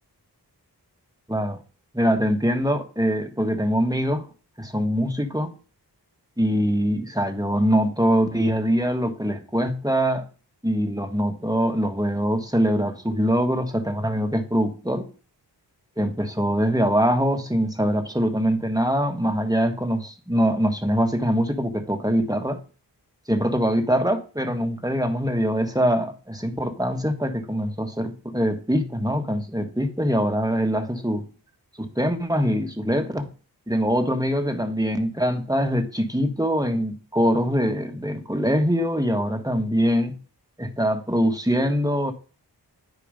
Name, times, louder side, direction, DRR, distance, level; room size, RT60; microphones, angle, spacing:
voice 1, 1.3-1.6 1.9-4.3 4.6-5.5 6.4-10.2 10.6-15.1 16.0-20.0 20.3-22.6 23.3-31.3 31.8-33.3 33.7-40.2 40.6-42.1, equal, 10° right, 1.5 m, -23 dB
10.5 x 4.8 x 5.1 m
wide cardioid pair, 45°, 41 cm